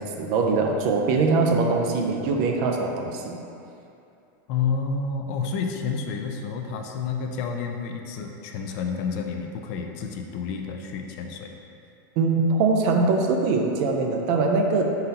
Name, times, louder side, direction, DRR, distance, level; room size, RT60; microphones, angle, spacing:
voice 1, 0.0-3.4 12.2-15.0, right 3 dB, 50° right, 2 dB, 0.4 m, -22 dB
voice 2, 4.5-11.5, left 5 dB, 50° left, 3 dB, 0.4 m, -30 dB
3.9 x 3.9 x 2.8 m, 2.6 s
supercardioid pair, 140°, 11 cm